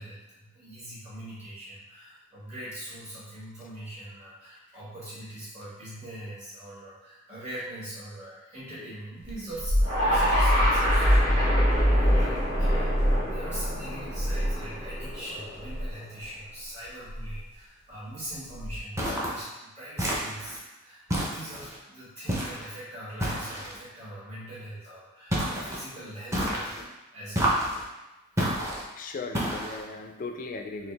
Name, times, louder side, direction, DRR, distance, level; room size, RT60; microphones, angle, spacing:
voice 1, 0.0-27.7 28.3-28.5, right 1 dB, 35° right, -10 dB, 1.4 m, -42 dB
sound 1, 9.3-15.1 15.6-15.9 17.1-17.4 18.5-19.0, equal, 50° right, 0.7 m, -25 dB
sound 2, 9.8-16.1, equal, 90° right, 1.2 m, -29 dB
sound 3, 19.0-19.4 20.0-20.6 21.1-21.8 22.3-22.7 23.2-23.8 25.3-25.8 26.3-26.8 27.3-27.8 28.4-28.8 29.3-29.8, equal, 15° right, 0.6 m, -29 dB
voice 2, 29.0-30.9, left 3 dB, 40° left, 5 dB, 0.3 m, -37 dB
3.9 x 2.4 x 3.3 m, 1.0 s
head